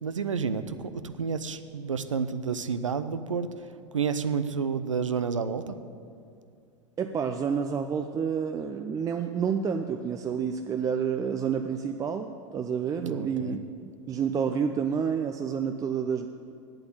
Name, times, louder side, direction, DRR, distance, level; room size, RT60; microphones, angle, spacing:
voice 1, 0.0-3.5 3.9-5.8 13.0-13.6, right 6 dB, 85° right, 11 dB, 0.6 m, -30 dB
voice 2, 7.0-13.6 14.1-16.3, right 7 dB, 20° right, 6 dB, 0.5 m, -29 dB
8.7 x 7.8 x 8.9 m, 2.4 s
figure-of-eight pair, 90°, 16 cm